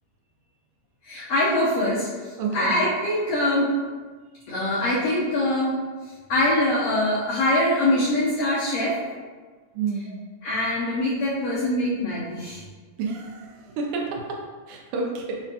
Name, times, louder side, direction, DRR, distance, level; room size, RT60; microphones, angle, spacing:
voice 1, 1.0-3.7 4.5-5.8 6.3-9.0 10.4-12.6, left 1 dB, 80° left, -8 dB, 1.4 m, -23 dB
voice 2, 2.4-2.8 9.7-10.1 13.0-14.2 14.7-15.4, right 4 dB, 85° right, 0 dB, 2.1 m, -29 dB
5.1 x 2.2 x 2.7 m, 1.4 s
omnidirectional pair, 3.4 m